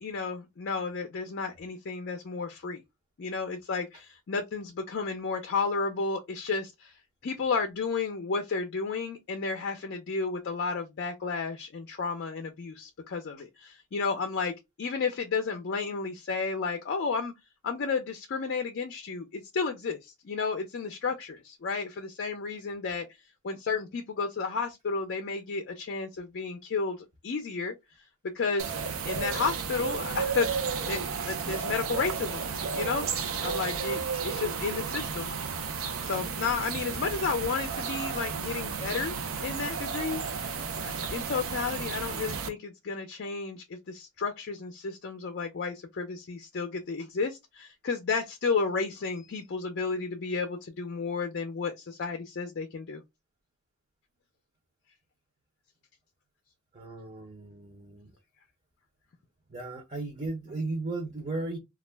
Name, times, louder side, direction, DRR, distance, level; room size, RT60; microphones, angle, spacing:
voice 1, 0.0-2.8 3.2-7.0 7.2-17.3 17.6-23.1 23.4-27.7 28.3-28.8 29.1-32.5 32.7-33.1 33.4-35.3 35.6-35.7 36.0-39.2 39.4-53.0, left 4 dB, 55° left, 0.4 m, -32 dB
sound 1, 28.6-42.5, right 5 dB, 80° right, 0.5 m, -33 dB
voice 2, 56.7-58.1 59.5-61.6, right 2 dB, 30° right, 0.6 m, -35 dB
2.3 x 2.1 x 3.1 m
head